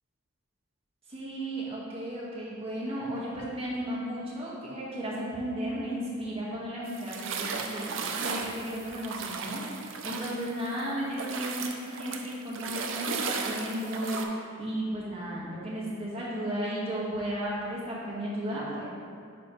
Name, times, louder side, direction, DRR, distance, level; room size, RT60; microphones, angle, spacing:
voice 1, 1.1-7.8 8.2-9.6 10.0-14.3 14.6-18.8, equal, 30° right, -8 dB, 1.6 m, -34 dB
sound 1, 6.9-10.8 11.1-14.2, right 5 dB, 65° right, 0.6 m, -35 dB
10.0 x 4.2 x 3.1 m, 2.3 s
head